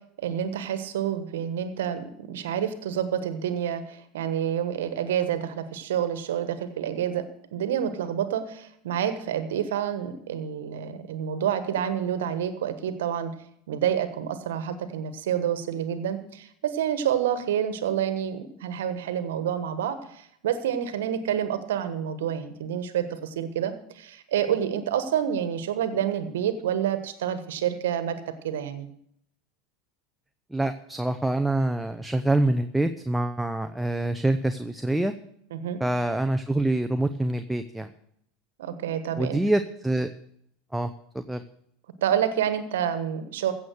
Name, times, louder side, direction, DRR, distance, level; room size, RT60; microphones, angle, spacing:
voice 1, 0.2-7.2 7.5-13.3 13.7-28.2 28.4-28.9 35.5-35.8 38.6-39.4 42.0-43.5, right 9 dB, 75° right, 10 dB, 1.3 m, -28 dB
voice 2, 30.5-35.1 35.8-37.9 39.2-40.1 40.7-41.4, right 1 dB, 5° right, 7 dB, 0.7 m, -26 dB
15.5 x 7.2 x 6.4 m, 0.72 s
hypercardioid pair, 85°, 0 cm